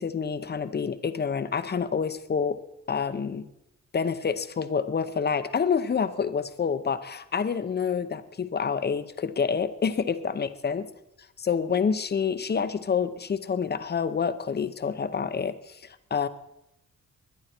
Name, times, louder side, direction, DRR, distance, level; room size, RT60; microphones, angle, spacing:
voice 1, 0.0-2.6 2.9-3.5 3.9-10.9 11.4-15.8 16.1-16.3, left 6 dB, 35° left, 12 dB, 0.8 m, -27 dB
21.0 x 10.5 x 4.4 m, 0.85 s
wide cardioid pair, 125°, 31 cm